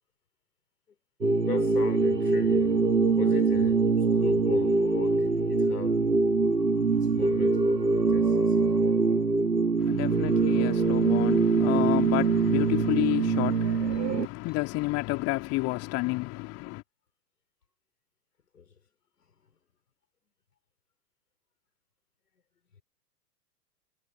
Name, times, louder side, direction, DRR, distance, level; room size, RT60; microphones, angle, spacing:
sound 1, 1.2-14.3, right 4 dB, 90° right, 1.3 m, -24 dB
voice 1, 1.4-6.3 6.9-8.8 18.5-18.8 19.2-19.5, left 7 dB, 70° left, 4.9 m, -39 dB
voice 2, 9.8-16.8, left 22 dB, 30° left, 2.7 m, -30 dB
figure-of-eight pair, 105°, 48 cm